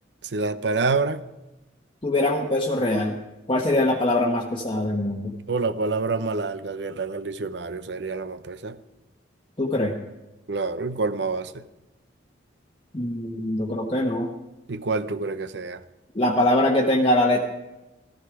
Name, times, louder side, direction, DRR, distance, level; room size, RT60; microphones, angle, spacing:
voice 1, 0.3-1.2 5.5-8.8 10.5-11.6 14.7-15.8, right 3 dB, 65° right, 13 dB, 0.7 m, -27 dB
voice 2, 2.0-3.2 3.5-5.3 9.6-9.9 12.9-14.3 16.1-17.4, left 1 dB, 30° left, 0 dB, 1.1 m, -22 dB
14.5 x 14.0 x 4.9 m, 1.0 s
head